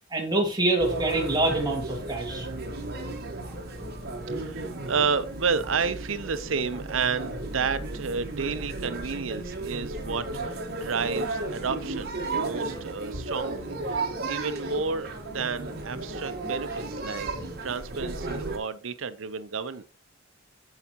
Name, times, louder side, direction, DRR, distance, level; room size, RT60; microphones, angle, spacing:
voice 1, 0.1-2.5, right 2 dB, 20° right, 2.1 m, -26 dB
sound 1, 0.8-18.6, right 2 dB, 55° right, 1.5 m, -34 dB
voice 2, 4.3-13.9 14.3-17.3 17.6-19.8, right 5 dB, 90° right, 0.7 m, -31 dB
14.0 x 4.9 x 3.0 m
head